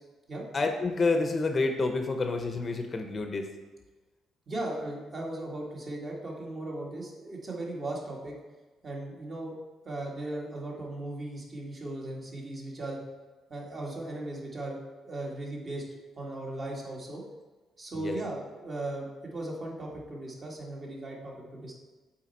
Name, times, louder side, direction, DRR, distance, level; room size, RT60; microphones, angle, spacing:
voice 1, 0.5-3.5 17.9-18.2, left 3 dB, 35° left, 5 dB, 0.7 m, -28 dB
voice 2, 4.5-8.3 8.8-9.6 9.8-13.0 13.5-14.8 15.0-15.8 16.2-17.2 17.8-21.7, right 2 dB, 40° right, -3 dB, 1.9 m, -37 dB
7.5 x 4.5 x 4.2 m, 1.3 s
cardioid pair, 90°, 0 cm